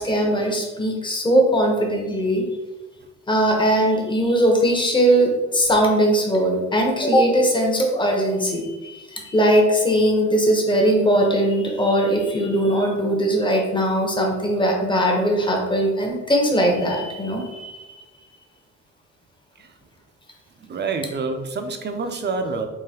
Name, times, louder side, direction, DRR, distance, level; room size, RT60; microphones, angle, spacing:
voice 1, 0.0-2.5 3.3-17.9, right 1 dB, 15° left, 1 dB, 0.8 m, -20 dB
voice 2, 20.6-22.6, right 4 dB, 35° right, 6 dB, 0.5 m, -27 dB
3.8 x 2.7 x 2.8 m, 1.1 s
cardioid pair, 90°, 30 cm